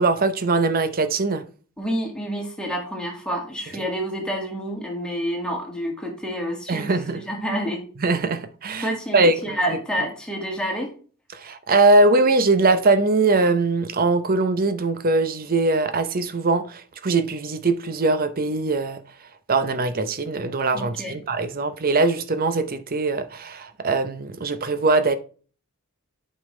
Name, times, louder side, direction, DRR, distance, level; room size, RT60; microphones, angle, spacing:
voice 1, 0.0-1.4 6.7-7.2 8.0-9.8 11.3-19.0 19.5-25.2, right 3 dB, 40° right, 0.7 m, -21 dB
voice 2, 1.8-7.8 8.8-10.9 20.7-21.2, equal, 5° left, 1.9 m, -28 dB
8.3 x 5.5 x 3.2 m
head